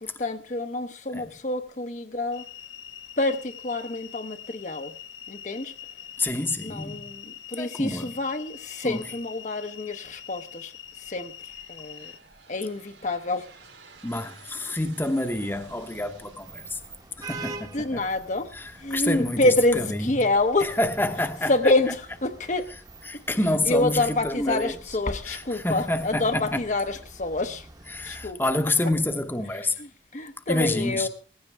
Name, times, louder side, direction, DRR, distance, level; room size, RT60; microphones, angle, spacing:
voice 1, 0.0-2.5 3.2-4.9 5.3-5.7 6.6-10.7 11.0-11.3 11.7-12.1 12.5-13.5 17.4-18.5 18.8-20.8 21.5-22.7 23.6-27.7 28.0-28.4 29.5-31.1, left 2 dB, 40° left, 0.8 m, -27 dB
sound 1, 2.3-12.2, left 9 dB, 85° left, 1.2 m, -44 dB
voice 2, 6.2-7.0 7.6-8.1 8.8-9.1 14.0-16.8 17.2-18.0 18.5-20.2 20.6-21.5 23.1-24.8 25.3-26.6 27.9-29.7 30.5-31.1, left 1 dB, 10° left, 0.9 m, -28 dB
Aircraft, 9.1-9.7 10.4-18.0, right 4 dB, 80° right, 4.2 m, -53 dB
sound 2, 15.4-28.3, right 3 dB, 20° right, 1.0 m, -46 dB
18.0 x 15.0 x 3.4 m
head